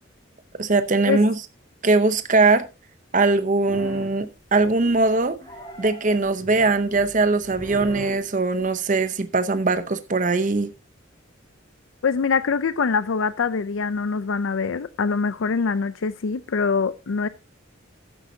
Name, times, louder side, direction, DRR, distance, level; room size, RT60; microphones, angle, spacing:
voice 1, 0.6-1.4 1.8-2.7 3.1-5.4 5.8-10.7, right 3 dB, 40° right, 0.7 m, -21 dB
sound 1, 3.7-4.2 4.6-5.1 5.4-8.7, equal, 20° left, 3.2 m, -39 dB
voice 2, 12.0-17.3, left 5 dB, 80° left, 0.5 m, -24 dB
13.5 x 10.0 x 2.7 m
head